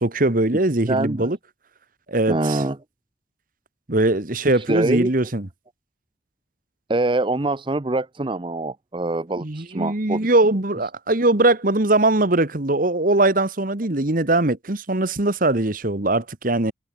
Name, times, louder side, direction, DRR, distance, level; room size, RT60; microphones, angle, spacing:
voice 1, 0.0-1.4 2.1-2.6 3.9-5.5 9.4-16.7, right 2 dB, 50° right, 1.6 m, -21 dB
voice 2, 0.9-1.3 2.3-2.8 4.6-5.1 6.9-10.3, right 2 dB, 25° right, 0.7 m, -24 dB
head